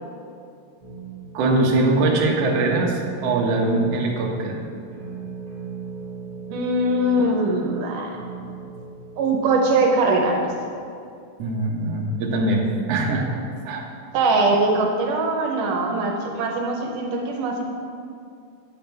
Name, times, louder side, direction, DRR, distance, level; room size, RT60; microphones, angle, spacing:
sound 1, 0.8-10.7, right 5 dB, 45° right, 3.1 m, -38 dB
voice 1, 1.3-4.6 11.4-13.3 13.7-13.8, right 2 dB, 65° right, -1 dB, 1.8 m, -22 dB
voice 2, 6.5-8.2 9.2-10.5 14.1-17.6, right 2 dB, 85° right, 1 dB, 2.4 m, -21 dB
8.8 x 8.6 x 3.4 m, 2.4 s
omnidirectional pair, 3.7 m